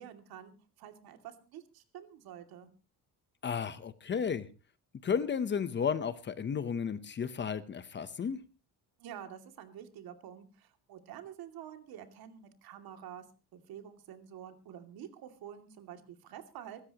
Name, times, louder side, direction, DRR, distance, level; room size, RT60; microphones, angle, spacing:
voice 1, 0.0-2.7 9.0-13.2 13.5-16.8, right 10 dB, 65° right, 7 dB, 2.7 m, -48 dB
voice 2, 3.4-4.5 5.0-8.4, left 7 dB, 30° left, 13 dB, 0.9 m, -33 dB
25.0 x 13.0 x 3.0 m, 0.33 s
cardioid pair, 145°, 39 cm